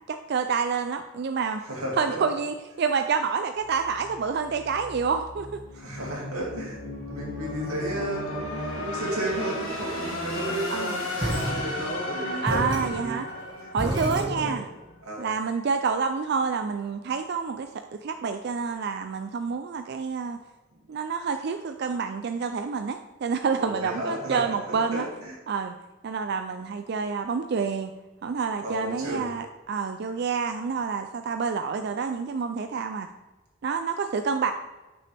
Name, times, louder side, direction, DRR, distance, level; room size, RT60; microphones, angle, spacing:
voice 1, 0.1-1.6 2.0-5.6 10.7-11.0 12.4-13.3 13.7-14.7 15.2-20.4 20.9-25.1 25.5-25.7 26.0-27.9 28.2-33.1 33.6-34.5, right 5 dB, 50° right, 7 dB, 0.3 m, -28 dB
voice 2, 1.6-2.2 5.7-6.8 7.1-10.9 11.2-13.2 13.6-14.6 15.0-15.3 20.7-20.8 23.6-25.4 28.6-29.3, right 1 dB, 90° right, -3 dB, 2.6 m, -33 dB
sound 1, 3.6-14.6, left 1 dB, 70° left, 2.3 m, -35 dB
sound 2, 11.2-12.1 12.5-14.8, right 1 dB, 20° right, 1.6 m, -31 dB
8.6 x 6.1 x 3.4 m, 1.2 s
head